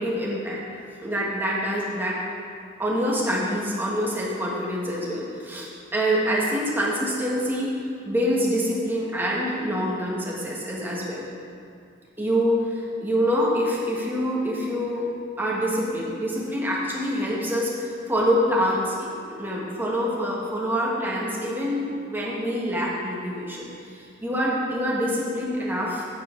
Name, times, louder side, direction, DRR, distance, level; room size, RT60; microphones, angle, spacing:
voice 1, 0.0-2.2 2.8-7.7 8.0-11.2 12.2-15.0 15.4-19.1 19.4-26.1, equal, 10° right, -5 dB, 1.4 m, -26 dB
9.5 x 4.5 x 5.9 m, 2.3 s
head